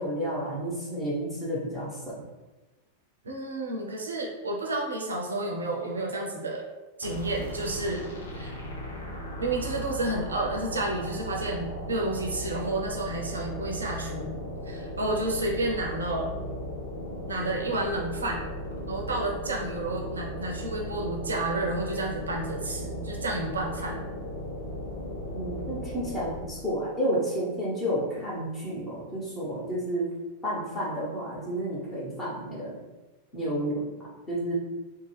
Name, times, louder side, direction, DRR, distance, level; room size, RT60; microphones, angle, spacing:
voice 1, 0.0-2.2 25.3-30.1 30.4-32.8 33.3-33.9 34.3-34.5, equal, 20° left, -7 dB, 1.2 m, -31 dB
voice 2, 3.2-6.6 7.0-8.0 8.4-8.6 9.4-14.4 14.6-16.3 17.3-18.4 18.9-24.0, right 2 dB, 75° right, 0 dB, 0.6 m, -31 dB
sound 1, 7.0-26.6, equal, 65° left, 0.6 m, -37 dB
2.7 x 2.2 x 3.2 m, 1.1 s
figure-of-eight pair, 90°, 0 cm